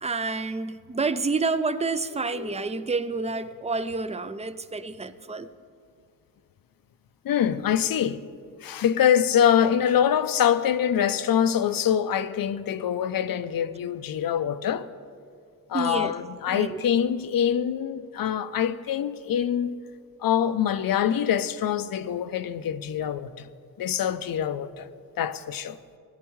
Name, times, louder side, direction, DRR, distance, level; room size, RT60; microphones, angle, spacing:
voice 1, 0.0-5.5 15.7-16.1 16.5-16.8, right 3 dB, 20° right, 0.3 m, -29 dB
voice 2, 2.3-2.9 7.2-8.2 8.6-14.9 15.7-19.8 20.2-23.5 23.8-24.9 25.2-25.8, left 9 dB, 85° left, 0.5 m, -25 dB
18.0 x 11.0 x 3.1 m
wide cardioid pair, 130°, 34 cm